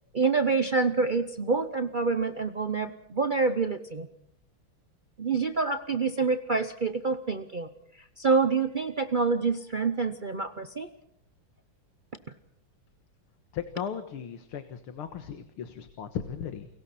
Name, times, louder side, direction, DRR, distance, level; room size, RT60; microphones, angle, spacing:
voice 1, 0.1-4.1 5.2-7.7 8.2-10.9, right 4 dB, 75° right, 9 dB, 0.4 m, -27 dB
voice 2, 13.5-16.7, left 8 dB, 85° left, 9 dB, 2.3 m, -36 dB
30.0 x 22.5 x 4.3 m, 0.75 s
omnidirectional pair, 2.3 m